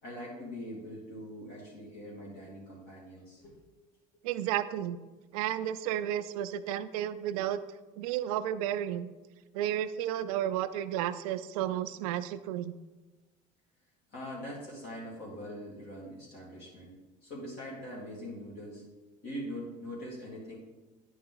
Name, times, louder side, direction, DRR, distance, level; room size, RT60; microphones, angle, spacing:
voice 1, 0.0-3.5 14.1-18.8 19.2-20.6, equal, 60° left, -6 dB, 2.5 m, -42 dB
voice 2, 4.2-5.0 5.3-7.6 8.0-9.1 9.5-12.7, right 11 dB, 90° right, 12 dB, 0.5 m, -32 dB
10.0 x 4.8 x 3.8 m, 1.2 s
supercardioid pair, 105°, 18 cm